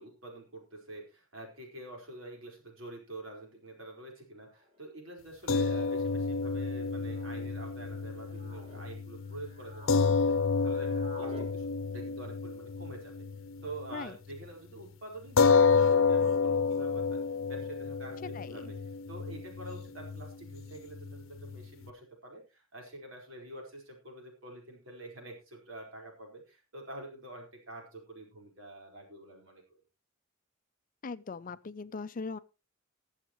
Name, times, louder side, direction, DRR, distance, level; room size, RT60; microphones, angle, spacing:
voice 1, 0.0-10.4 10.6-11.7 11.9-13.1 13.6-18.8 19.1-29.8, right 1 dB, 75° right, 4.6 m, -47 dB
sound 1, 3.4-3.5 4.6-4.8 5.8-6.2 7.0-7.5 8.1-8.8 9.3-10.2 10.4-11.5, left 1 dB, 35° right, 2.0 m, -50 dB
sound 2, 5.5-14.0 14.3-14.5 15.4-21.9, left 5 dB, 75° left, 0.7 m, -30 dB
voice 2, 18.3-18.7 31.0-32.4, left 4 dB, 40° left, 0.5 m, -40 dB
21.0 x 7.3 x 3.1 m
head